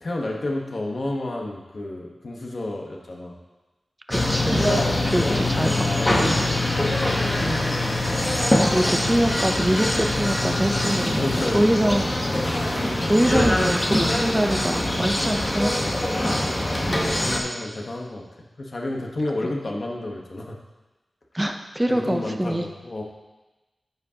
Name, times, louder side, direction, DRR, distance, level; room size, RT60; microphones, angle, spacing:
voice 1, 0.0-3.4 4.7-6.6 8.5-8.7 11.0-12.0 17.2-20.6 21.9-23.0, left 2 dB, 50° left, 0 dB, 1.1 m, -31 dB
sound 1, 4.1-17.4, left 1 dB, 20° left, 1.2 m, -23 dB
voice 2, 4.1-4.8 5.0-6.4 7.4-7.8 8.7-11.3 11.5-12.1 13.1-15.8 16.9-17.1 19.4-19.5 21.3-22.7, right 1 dB, 10° right, 5 dB, 0.6 m, -24 dB
13.0 x 5.0 x 2.9 m, 1.1 s
wide cardioid pair, 100°, 0 cm